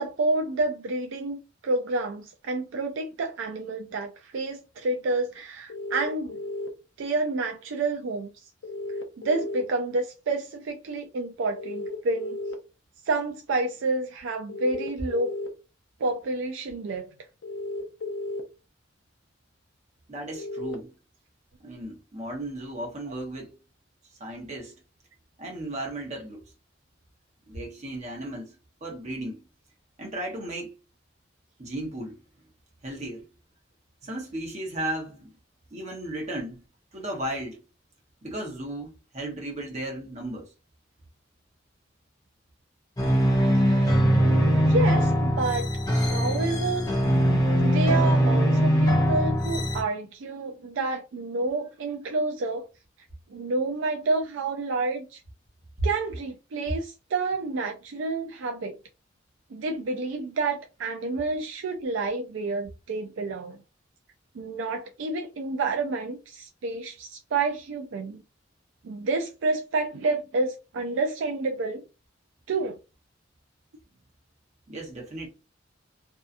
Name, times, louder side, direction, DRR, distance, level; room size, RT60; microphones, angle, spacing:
voice 1, 0.0-6.4 7.0-8.3 9.2-12.4 13.1-15.3 16.0-17.1 43.7-43.9 44.5-46.9 47.6-52.7 53.3-55.2 55.8-58.7 59.5-63.6 64.3-68.2 68.8-71.8 72.5-72.8, right 3 dB, 70° right, 0.4 m, -29 dB
sound 1, 5.7-6.7 8.6-9.6 11.6-12.5 14.5-15.5 17.4-18.4 20.4-20.8, left 2 dB, 65° left, 0.6 m, -34 dB
voice 2, 20.1-20.9 21.6-23.5 24.2-24.8 25.4-26.4 27.5-28.6 28.8-29.4 30.0-30.7 31.6-32.2 32.8-33.2 34.0-35.3 35.7-36.6 36.9-37.6 38.2-40.5 55.8-55.9 74.7-75.3, right 1 dB, 35° right, 0.9 m, -35 dB
sound 2, 43.0-49.8, equal, 20° left, 0.5 m, -21 dB
2.7 x 2.3 x 2.4 m
head